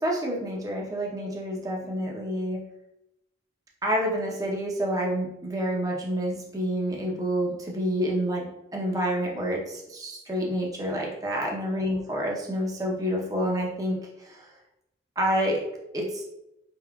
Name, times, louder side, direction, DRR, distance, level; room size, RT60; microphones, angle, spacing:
voice 1, 0.0-2.6 3.8-14.5 15.2-15.6 15.9-16.2, equal, 20° right, -2 dB, 0.7 m, -28 dB
4.7 x 3.6 x 2.3 m, 0.86 s
head